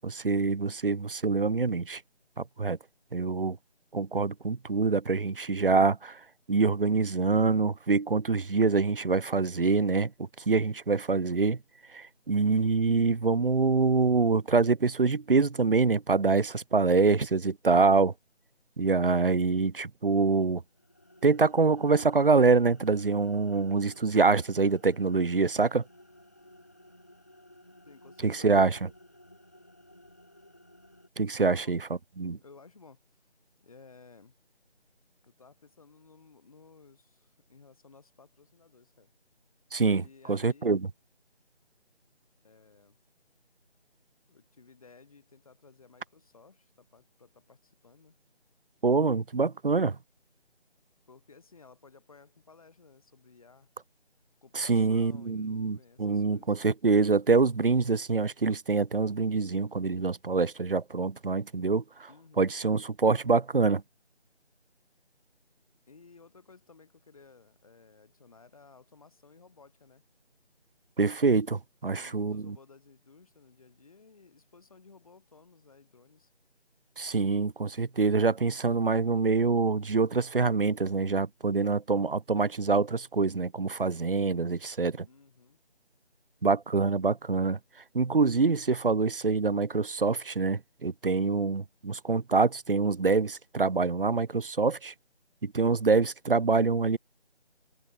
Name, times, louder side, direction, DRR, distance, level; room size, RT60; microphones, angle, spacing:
voice 1, 0.0-2.0 2.6-2.8 3.1-3.6 3.9-6.2 6.5-10.1 10.5-11.6 11.9-18.1 18.8-20.6 21.2-25.8 28.2-28.8 31.2-31.8 32.2-32.4 39.7-40.8 48.8-50.0 54.6-61.8 62.4-63.8 71.0-72.5 77.0-85.1 86.4-87.6 87.9-94.9 95.4-97.0, right 4 dB, 55° right, 0.6 m, -25 dB
sound 1, 20.7-31.1, left 1 dB, 15° left, 1.0 m, -56 dB
voice 2, 27.8-28.6 31.4-31.8 32.4-33.2 33.6-34.3 35.2-39.1 39.9-40.8 42.4-43.0 44.3-48.2 51.1-53.7 54.4-56.7 62.1-62.5 65.9-70.0 71.8-76.3 85.0-85.6, left 4 dB, 30° left, 5.2 m, -56 dB
figure-of-eight pair, 165°, 34 cm